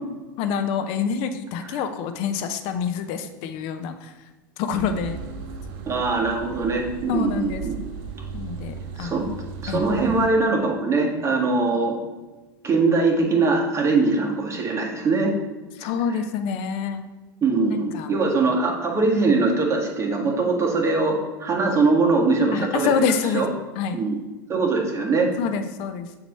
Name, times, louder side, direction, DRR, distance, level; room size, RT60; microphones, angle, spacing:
voice 1, 0.4-4.1 4.6-5.2 7.1-7.6 8.3-9.2 9.7-9.9 15.8-17.0 17.7-18.1 22.5-23.5 23.8-24.0 25.4-26.1, left 6 dB, 55° left, 8 dB, 0.7 m, -26 dB
sound 1, 4.7-10.3, right 5 dB, 55° right, 0.8 m, -36 dB
voice 2, 5.9-7.7 9.0-9.3 9.6-11.9 12.6-15.3 16.1-16.2 17.4-22.9 23.3-23.5 23.9-24.2 24.5-25.3, right 3 dB, 25° right, 0 dB, 1.6 m, -22 dB
7.1 x 3.0 x 5.4 m, 1.2 s
hypercardioid pair, 100°, 11 cm